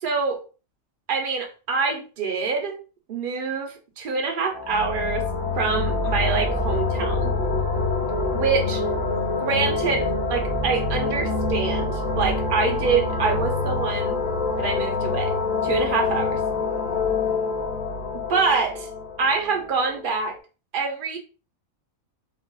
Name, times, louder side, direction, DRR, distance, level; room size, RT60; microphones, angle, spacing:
voice 1, 0.0-0.4 1.1-2.8 3.1-5.3 5.6-7.3 8.3-8.8 9.4-14.2 14.6-15.3 15.6-16.4 18.3-18.9 19.2-20.4 20.7-21.2, right 5 dB, 50° right, 3 dB, 0.6 m, -25 dB
sound 1, 4.5-20.1, left 3 dB, 65° left, 1.0 m, -26 dB
3.3 x 2.3 x 2.2 m, 0.33 s
omnidirectional pair, 1.5 m